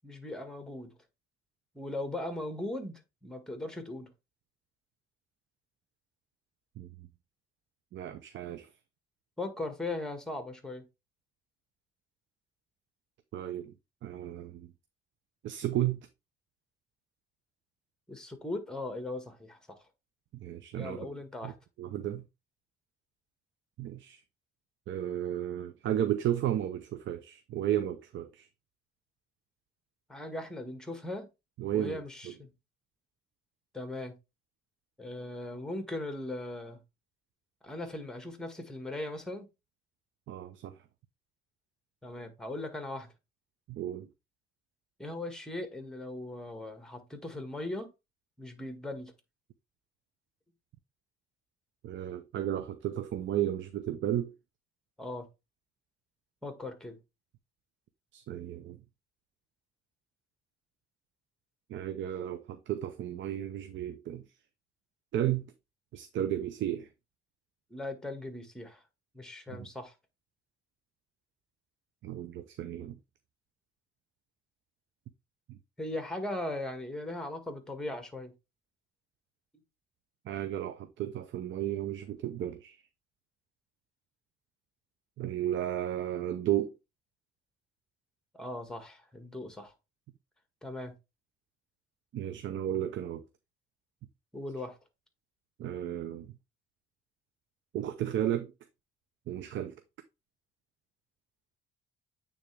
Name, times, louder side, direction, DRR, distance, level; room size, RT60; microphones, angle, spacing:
voice 1, 0.0-0.9 1.8-4.1 9.4-10.8 18.1-19.8 20.8-21.5 30.1-31.3 31.7-32.5 33.7-34.2 35.0-36.8 37.6-39.5 42.0-43.1 45.0-47.9 48.4-49.1 55.0-55.3 56.4-57.0 67.7-68.8 69.1-69.9 75.8-78.3 88.3-89.7 90.6-91.0 94.3-94.8, left 2 dB, 5° left, 1.7 m, -39 dB
voice 2, 6.8-7.1 7.9-8.7 13.3-13.7 14.0-14.7 15.4-16.1 20.3-21.0 21.4-21.5 21.8-22.2 23.8-24.2 24.9-28.5 31.6-32.3 40.3-40.7 43.7-44.1 51.8-54.3 58.1-58.8 61.7-64.2 65.1-65.5 65.9-66.9 69.5-69.7 72.0-73.0 75.5-75.6 80.3-82.8 85.2-86.7 92.1-93.2 95.6-96.3 97.7-98.5 99.3-99.7, right 11 dB, 70° right, 0.7 m, -33 dB
8.8 x 3.6 x 3.3 m
cardioid pair, 90°, 20 cm